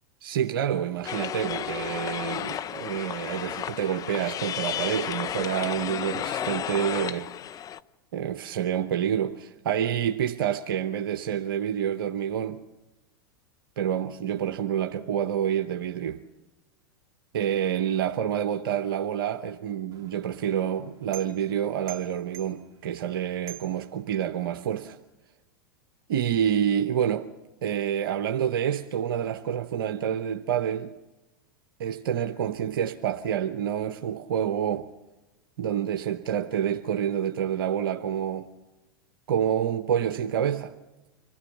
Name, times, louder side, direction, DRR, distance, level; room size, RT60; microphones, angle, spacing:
voice 1, 0.2-7.3 8.1-12.6 13.8-16.2 17.3-25.0 26.1-27.3 27.6-30.9 31.8-34.9 35.6-38.5 39.3-40.7, right 9 dB, 70° right, 0.9 m, -28 dB
sound 1, 1.1-7.8, left 10 dB, 30° left, 0.7 m, -33 dB
sound 2, 19.9-24.6, right 11 dB, 35° right, 1.9 m, -48 dB
25.5 x 17.0 x 7.3 m
hypercardioid pair, 95°, 12 cm